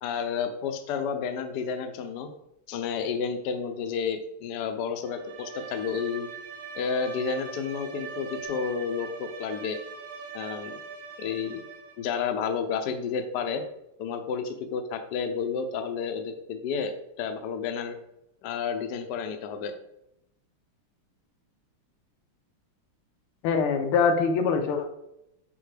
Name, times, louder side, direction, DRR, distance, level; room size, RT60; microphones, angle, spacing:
voice 1, 0.0-2.3 2.7-6.3 6.7-9.8 10.3-10.8 11.2-11.6 12.0-13.6 14.0-18.0 18.4-19.7, left 6 dB, 65° left, 6 dB, 1.1 m, -31 dB
Bowed string instrument, 5.0-12.1, right 6 dB, 80° right, 1.6 m, -41 dB
voice 2, 23.4-24.9, left 5 dB, 90° left, 5 dB, 1.7 m, -23 dB
5.8 x 5.2 x 3.3 m, 0.81 s
omnidirectional pair, 2.4 m